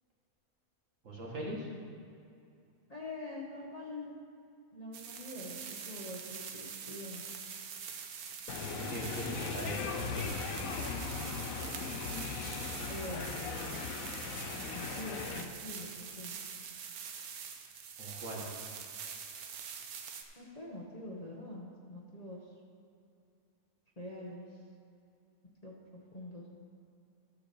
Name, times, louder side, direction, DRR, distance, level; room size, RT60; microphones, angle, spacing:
voice 1, 1.0-1.7 8.7-10.3 18.0-18.6, right 2 dB, 60° right, -3 dB, 2.0 m, -41 dB
voice 2, 2.9-4.2 4.7-7.2 12.9-13.8 14.7-15.9 16.2-16.4 20.4-22.5 24.0-24.6 25.6-25.7 26.1-26.5, left 1 dB, 30° left, -3 dB, 1.2 m, -44 dB
sound 1, 4.9-20.2, right 7 dB, 80° right, 1.3 m, -44 dB
sound 2, 8.5-15.4, left 5 dB, 70° left, 1.1 m, -38 dB
13.0 x 4.7 x 6.9 m, 2.5 s
omnidirectional pair, 1.6 m